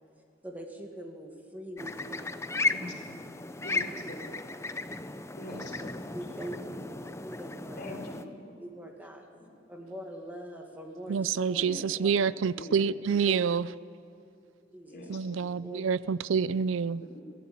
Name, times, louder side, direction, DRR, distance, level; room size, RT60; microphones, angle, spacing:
voice 1, 0.4-2.9 3.7-4.3 4.9-5.0 5.5-5.6 6.1-6.7 7.2-8.0 8.6-9.2 9.7-11.7 12.0-12.1 13.2-13.4 14.7-15.1 15.6-15.8, equal, 10° right, 2 dB, 1.7 m, -43 dB
sound 1, 1.8-8.2, left 3 dB, 15° left, 0.6 m, -35 dB
voice 2, 2.7-3.2 3.6-4.2 5.4-5.9 7.8-8.4 9.3-9.5 11.6-11.8 12.6-12.8 14.9-15.1 16.9-17.2, left 1 dB, 50° left, 0 dB, 4.0 m, -43 dB
voice 3, 11.1-13.7 15.1-17.0, right 6 dB, 75° right, 19 dB, 0.4 m, -27 dB
22.0 x 15.5 x 8.6 m, 2.5 s
head